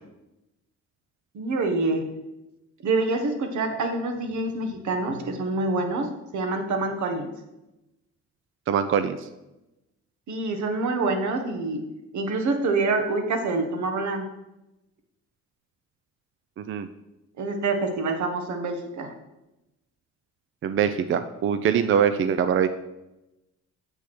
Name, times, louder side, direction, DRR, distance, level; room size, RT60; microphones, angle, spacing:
voice 1, 1.3-2.1 2.8-6.1 6.3-7.3 10.3-11.8 12.1-14.3 17.4-19.1, right 3 dB, 70° right, 5 dB, 1.3 m, -26 dB
voice 2, 8.7-9.3 16.6-16.9 20.6-22.7, right 8 dB, 45° right, 11 dB, 0.5 m, -23 dB
8.0 x 3.5 x 6.0 m, 0.96 s
cardioid pair, 90°, 30 cm